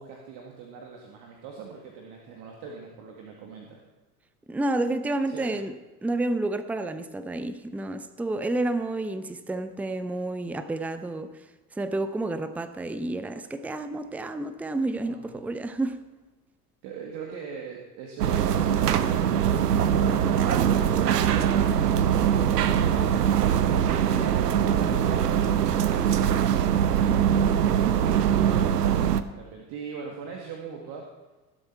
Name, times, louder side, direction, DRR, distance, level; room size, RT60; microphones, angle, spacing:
voice 1, 0.0-3.8 5.3-5.5 15.0-15.3 16.8-19.1 19.8-23.4 23.8-26.1 27.2-28.6 29.2-31.1, right 5 dB, 55° right, 2.1 m, -41 dB
voice 2, 4.5-5.8 6.0-11.4 11.7-16.0, right 2 dB, 5° right, 0.6 m, -30 dB
sound 1, 18.2-29.2, right 9 dB, 85° right, 0.7 m, -22 dB
18.5 x 7.9 x 4.5 m
hypercardioid pair, 75°, 46 cm